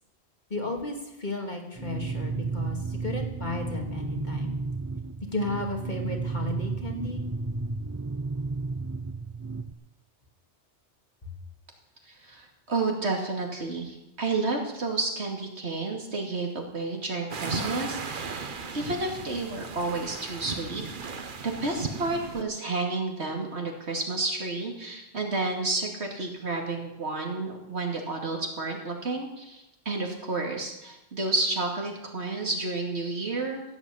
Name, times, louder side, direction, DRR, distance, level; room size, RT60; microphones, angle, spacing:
voice 1, 0.5-4.6 5.2-7.2, left 2 dB, 45° left, 1 dB, 2.6 m, -33 dB
sound 1, 1.8-9.7, right 4 dB, 30° right, 0.3 m, -33 dB
voice 2, 12.1-20.8 21.4-33.6, right 3 dB, 90° right, 1 dB, 2.8 m, -31 dB
sound 2, 17.3-22.4, right 4 dB, 50° right, 1.1 m, -36 dB
15.5 x 8.2 x 8.6 m, 0.92 s
omnidirectional pair, 1.1 m